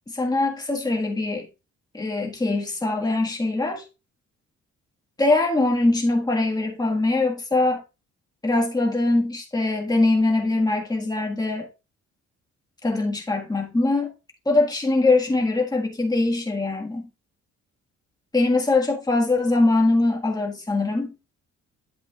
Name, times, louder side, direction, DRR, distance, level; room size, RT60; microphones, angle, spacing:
voice 1, 0.1-1.5 1.9-3.8 5.2-7.8 8.4-11.7 12.8-14.1 14.5-17.1 18.3-21.1, left 2 dB, 15° left, 1.6 m, -22 dB
9.1 x 7.8 x 2.4 m
cardioid pair, 90°, 30 cm